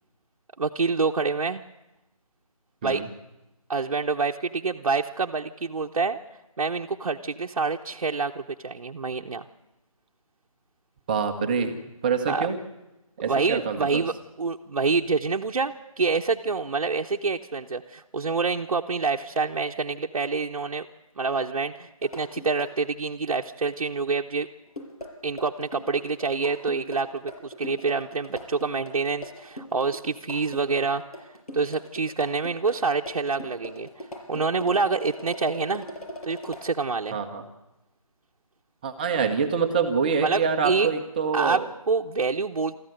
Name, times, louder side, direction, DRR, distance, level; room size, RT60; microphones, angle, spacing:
voice 1, 0.6-1.6 2.8-3.0 3.7-6.2 6.6-9.4 12.3-12.5 13.3-20.9 21.2-24.5 25.2-31.0 31.5-35.8 36.2-37.2 40.2-40.9 41.3-42.8, right 4 dB, 65° right, 0 dB, 0.9 m, -27 dB
voice 2, 11.1-11.7 12.0-12.6 13.2-14.0 37.1-37.4 38.8-41.6, right 6 dB, 15° right, 5 dB, 0.9 m, -25 dB
sound 1, 22.0-22.7 24.7-36.7, equal, 90° left, 5.7 m, -40 dB
24.0 x 14.0 x 7.8 m, 1.0 s
figure-of-eight pair, 165°, 19 cm